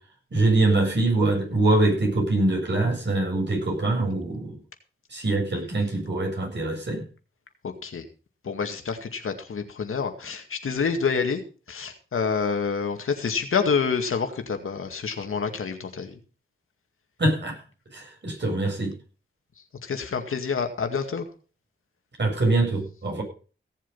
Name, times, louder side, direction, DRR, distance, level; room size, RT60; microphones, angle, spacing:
voice 1, 0.3-4.5 5.1-7.0 17.2-17.6 17.9-18.9 22.2-23.2, right 2 dB, 60° right, 2 dB, 7.5 m, -23 dB
voice 2, 7.6-8.1 8.4-11.4 11.7-16.1 19.8-21.3, left 5 dB, 85° left, 5 dB, 2.1 m, -27 dB
17.0 x 7.6 x 5.5 m, 0.37 s
cardioid pair, 50°, 21 cm